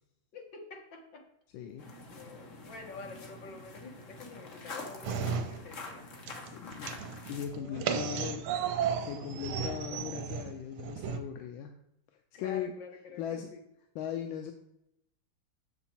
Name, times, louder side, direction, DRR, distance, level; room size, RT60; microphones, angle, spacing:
voice 1, 0.3-1.3 1.8-6.0 7.6-8.4 9.3-9.5 12.4-13.6, left 3 dB, 60° left, 3 dB, 1.9 m, -48 dB
voice 2, 1.5-1.9 6.4-7.0 7.3-11.7 12.3-12.7 13.2-13.5 13.9-14.5, left 9 dB, 75° left, 6 dB, 1.3 m, -39 dB
sound 1, 1.8-7.5, left 3 dB, 45° left, 1.2 m, -46 dB
sound 2, 5.0-6.0 6.3-11.2, right 7 dB, 75° right, 1.5 m, -34 dB
7.0 x 7.0 x 4.3 m, 0.80 s
omnidirectional pair, 2.4 m